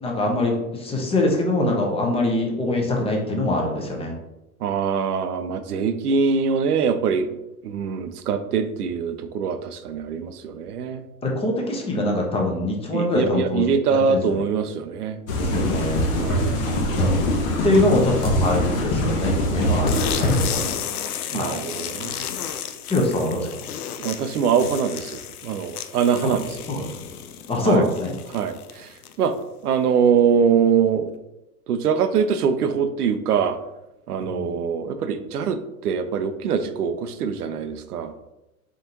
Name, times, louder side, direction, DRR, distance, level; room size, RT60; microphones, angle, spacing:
voice 1, 0.0-4.1 11.2-13.6 13.9-14.4 15.4-16.0 17.0-20.9 21.3-21.6 22.9-23.5 26.2-26.3 26.7-27.1 27.5-28.2 34.2-34.6, left 1 dB, 15° left, 0 dB, 0.7 m, -24 dB
voice 2, 4.6-11.1 12.9-15.2 16.2-17.3 20.2-20.4 21.3-22.3 24.0-26.6 27.6-27.8 28.3-29.4 29.6-31.2 31.7-33.6 34.1-38.1, right 6 dB, 90° right, 10 dB, 0.5 m, -23 dB
sound 1, 15.3-20.4, left 1 dB, 60° left, 1.0 m, -22 dB
sound 2, 19.9-29.4, left 9 dB, 75° left, 0.6 m, -33 dB
3.9 x 3.6 x 2.8 m, 0.94 s
hypercardioid pair, 105°, 44 cm